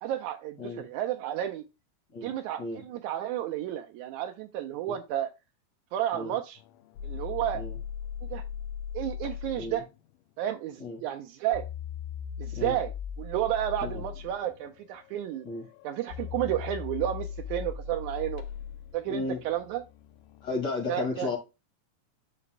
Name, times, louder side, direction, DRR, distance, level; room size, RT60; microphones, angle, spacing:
voice 1, 0.0-1.6 2.2-5.3 5.9-6.6 7.0-7.6 8.3-8.4 8.9-9.8 10.4-11.6 12.4-12.9 13.2-15.5 15.8-18.4 18.9-19.8 20.9-21.3, right 12 dB, 80° right, 4 dB, 1.9 m, -31 dB
voice 2, 2.1-2.8 6.1-6.3 7.5-7.8 9.6-9.8 10.8-11.0 12.5-12.7 13.8-14.0 15.4-15.7 19.1-19.4 20.4-21.4, left 3 dB, 35° left, 1 dB, 2.1 m, -34 dB
sound 1, 6.6-9.8 11.5-20.6, left 8 dB, 80° left, 2.1 m, -39 dB
11.0 x 5.0 x 2.2 m, 0.26 s
omnidirectional pair, 3.7 m